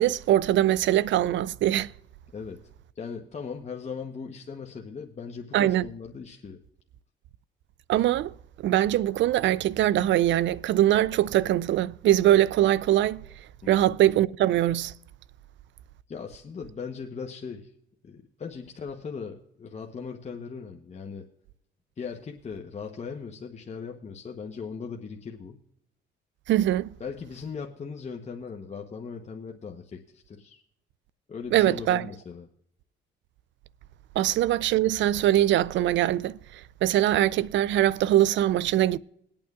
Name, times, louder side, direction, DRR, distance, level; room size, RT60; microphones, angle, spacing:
voice 1, 0.0-1.9 5.5-5.9 7.9-8.3 8.6-13.2 13.7-14.9 26.5-26.9 31.5-32.1 34.2-39.0, right 13 dB, 70° right, 0.4 m, -22 dB
voice 2, 3.0-6.6 13.6-13.8 16.1-17.7 18.0-21.2 22.0-25.6 27.0-30.6 31.3-32.5, left 5 dB, 35° left, 0.9 m, -38 dB
21.5 x 8.8 x 2.4 m
cardioid pair, 90°, 20 cm